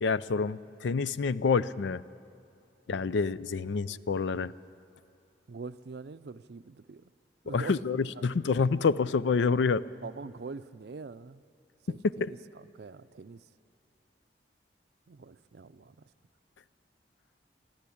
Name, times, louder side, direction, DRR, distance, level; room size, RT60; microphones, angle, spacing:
voice 1, 0.0-2.0 2.9-4.5 7.5-9.8, left 5 dB, 85° left, 17 dB, 0.4 m, -27 dB
voice 2, 3.8-4.5 5.5-7.1 7.4-7.8 8.2-8.7 10.0-11.4 11.8-13.4 15.1-16.0, right 4 dB, 65° right, 14 dB, 0.5 m, -45 dB
23.0 x 14.0 x 8.6 m, 2.6 s
head